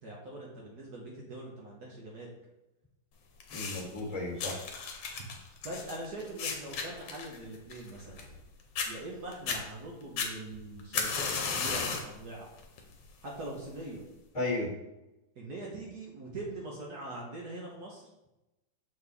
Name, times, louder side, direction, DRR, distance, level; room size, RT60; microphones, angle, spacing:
voice 1, 0.0-2.3 5.2-5.3 5.6-8.2 8.9-12.5 13.2-14.0 15.3-18.1, right 2 dB, 55° right, -3 dB, 1.6 m, -42 dB
sound 1, 3.4-4.0 4.4-8.4 8.8-8.9 9.3-9.6 10.2-12.1 12.6-12.9 13.7-13.8, left 5 dB, 70° left, 1.5 m, -34 dB
voice 2, 3.5-4.6 14.3-14.7, left 2 dB, 20° left, -3 dB, 1.9 m, -34 dB
6.7 x 4.4 x 3.5 m, 0.95 s
omnidirectional pair, 2.2 m